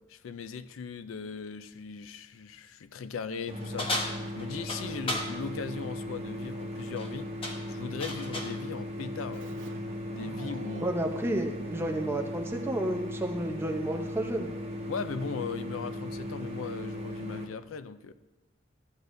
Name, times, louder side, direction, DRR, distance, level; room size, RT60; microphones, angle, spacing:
voice 1, 0.1-3.9 4.3-7.3 7.7-9.5 10.1-10.9 14.9-18.1, left 5 dB, 90° left, 0.4 m, -38 dB
sound 1, 3.5-17.5, equal, 35° right, 1.1 m, -37 dB
sound 2, 3.8-5.3 6.8-7.1 7.4-8.6, left 1 dB, 30° left, 1.0 m, -34 dB
Keyboard (musical), 9.3-12.7, right 3 dB, 70° right, 0.9 m, -49 dB
voice 2, 10.8-14.5, right 1 dB, 10° right, 0.7 m, -31 dB
13.0 x 7.9 x 2.6 m
head